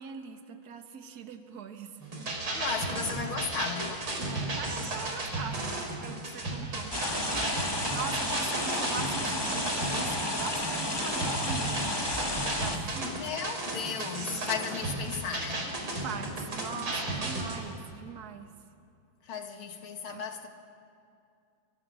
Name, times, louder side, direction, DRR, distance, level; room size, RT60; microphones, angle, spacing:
voice 1, 0.0-2.0 4.2-12.0 12.5-13.2 16.0-18.5 20.1-20.2, right 6 dB, 50° right, 1.8 m, -42 dB
sound 1, 2.0-17.6, right 2 dB, 75° right, 4.9 m, -34 dB
voice 2, 2.5-4.1 13.0-15.8 19.2-20.5, left 6 dB, 75° left, 2.6 m, -35 dB
sound 2, 6.9-12.8, left 1 dB, 10° left, 1.6 m, -32 dB
29.5 x 23.5 x 6.4 m
omnidirectional pair, 2.4 m